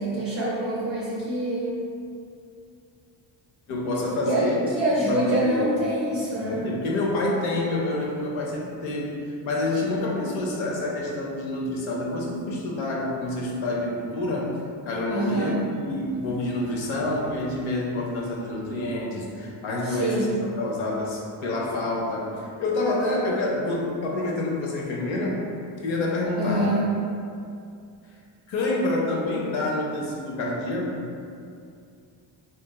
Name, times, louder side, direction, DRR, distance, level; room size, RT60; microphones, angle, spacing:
voice 1, 0.0-1.7 4.3-6.7 15.1-15.7 19.8-20.4 26.4-26.9, right 1 dB, 30° right, -6 dB, 0.5 m, -25 dB
voice 2, 3.7-4.6 5.1-5.9 6.3-14.5 14.8-25.5 25.8-26.7 28.5-31.1, left 2 dB, 85° left, -2 dB, 0.7 m, -27 dB
3.7 x 2.6 x 2.3 m, 2.4 s
cardioid pair, 100°, 47 cm